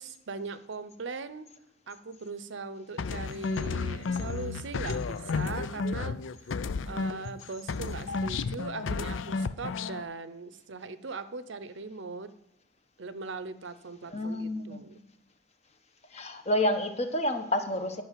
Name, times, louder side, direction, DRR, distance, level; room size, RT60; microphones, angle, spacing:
voice 1, 0.0-1.5 1.9-6.2 6.9-12.3 13.0-15.0, right 4 dB, 70° right, 13 dB, 0.7 m, -40 dB
sound 1, 3.0-7.4 7.7-10.0, left 4 dB, 75° left, 0.5 m, -32 dB
voice 2, 14.1-14.8 16.1-18.0, left 1 dB, 35° left, 7 dB, 1.1 m, -29 dB
11.0 x 6.1 x 7.5 m, 0.85 s
head